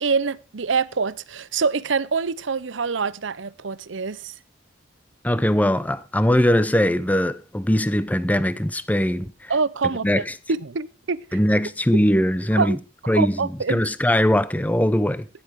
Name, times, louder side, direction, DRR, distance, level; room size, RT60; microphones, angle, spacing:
voice 1, 0.0-4.3 9.5-11.4 12.6-12.8 13.0-13.8, right 5 dB, 85° right, 0.8 m, -25 dB
voice 2, 5.2-9.5 10.0-10.2 11.3-12.8 13.1-13.4 13.7-15.2, left 1 dB, 10° left, 0.6 m, -20 dB
15.5 x 10.5 x 4.7 m
head